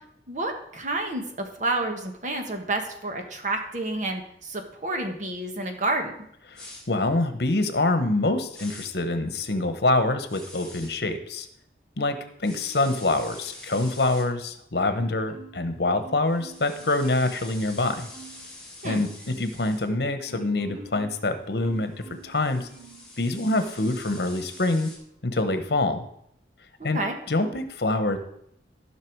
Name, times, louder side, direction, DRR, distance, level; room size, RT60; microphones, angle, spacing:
voice 1, 0.3-6.1 18.8-19.0 26.8-27.1, right 2 dB, 45° right, 4 dB, 1.5 m, -29 dB
voice 2, 6.5-11.5 12.0-18.1 18.8-19.1 19.4-22.7 23.2-24.9 25.2-26.1 26.8-27.0 27.3-28.2, left 2 dB, 70° left, 9 dB, 1.1 m, -25 dB
sound 1, 6.5-6.8 8.5-8.9 10.3-10.9 12.4-14.2 16.3-19.8 22.0-25.0, left 2 dB, 5° left, 3.3 m, -45 dB
Marimba xylophone, 14.9-15.7 16.0-17.4 17.8-18.5 18.9-23.0 23.4-24.1 24.5-24.7, right 4 dB, 80° right, 4.1 m, -48 dB
14.5 x 5.9 x 4.6 m, 0.72 s
head